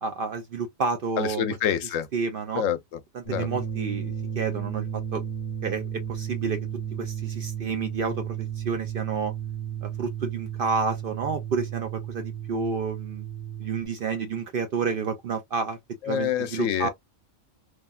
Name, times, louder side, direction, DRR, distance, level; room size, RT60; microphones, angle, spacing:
voice 1, 0.0-1.4 2.1-2.6 3.1-4.8 5.1-5.2 5.6-6.6 7.0-9.3 9.8-13.3 13.6-15.8 16.0-16.9, right 5 dB, 60° right, 0.6 m, -30 dB
voice 2, 1.2-2.1 2.6-3.0 3.3-3.5 16.0-16.9, left 9 dB, 80° left, 1.0 m, -27 dB
sound 1, 3.2-13.9, right 9 dB, 40° left, 1.2 m, -33 dB
3.3 x 2.1 x 2.3 m
omnidirectional pair, 1.3 m